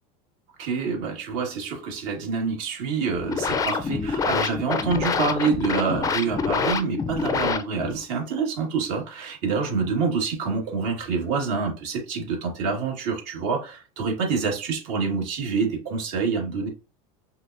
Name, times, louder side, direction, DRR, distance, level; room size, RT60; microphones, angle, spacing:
voice 1, 0.6-16.7, right 5 dB, 65° right, 1.7 m, -27 dB
sound 1, 3.1-8.0, left 5 dB, 20° left, 0.4 m, -26 dB
5.4 x 2.1 x 2.6 m
supercardioid pair, 120°, 19 cm